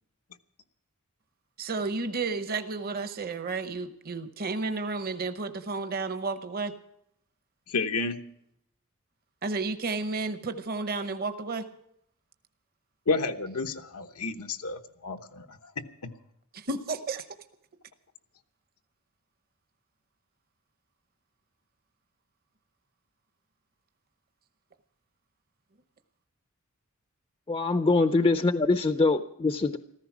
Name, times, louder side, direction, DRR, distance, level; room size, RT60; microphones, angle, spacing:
voice 1, 1.6-6.7 9.4-11.6 16.5-17.3, right 3 dB, 45° right, 10 dB, 0.8 m, -32 dB
voice 2, 7.7-8.2 13.1-15.8, left 3 dB, 90° left, 5 dB, 1.1 m, -31 dB
voice 3, 27.5-29.8, left 3 dB, 25° left, 11 dB, 0.5 m, -24 dB
15.0 x 14.0 x 6.0 m, 0.75 s
head